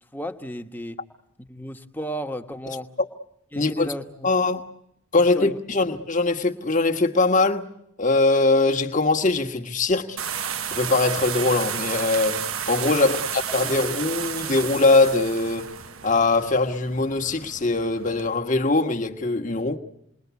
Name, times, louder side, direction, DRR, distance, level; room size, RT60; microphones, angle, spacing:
voice 1, 0.1-1.0 1.4-2.9 3.5-4.5 5.3-5.6 13.0-13.2, equal, 10° left, 1.2 m, -34 dB
voice 2, 3.6-3.9 4.2-4.6 5.1-7.6 8.0-10.2 10.7-12.4 12.7-15.7 16.0-19.8, left 3 dB, 35° left, 1.5 m, -22 dB
sound 1, 10.2-18.3, right 8 dB, 85° right, 1.2 m, -32 dB
28.5 x 21.5 x 8.3 m
head